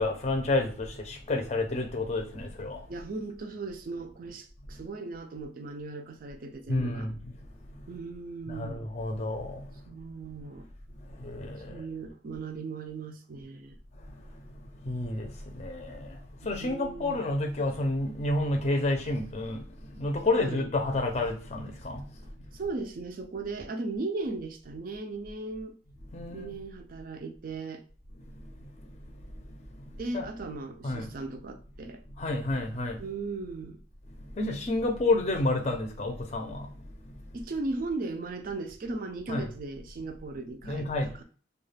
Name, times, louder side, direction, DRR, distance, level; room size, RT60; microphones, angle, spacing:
voice 1, 0.0-3.0 4.6-4.8 6.7-7.9 8.5-9.8 11.0-11.9 13.9-22.7 26.1-26.6 28.1-30.3 30.8-31.2 31.8-33.1 34.0-37.5 39.3-39.5 40.6-41.2, left 2 dB, 35° left, 0.5 m, -31 dB
voice 2, 2.9-7.1 7.9-8.8 9.9-10.7 11.7-13.8 16.6-17.2 20.4-20.7 22.5-25.8 26.3-27.8 30.0-32.0 33.0-33.8 37.3-40.9 41.2-41.3, right 3 dB, 50° right, 0.4 m, -37 dB
2.3 x 2.3 x 3.2 m
head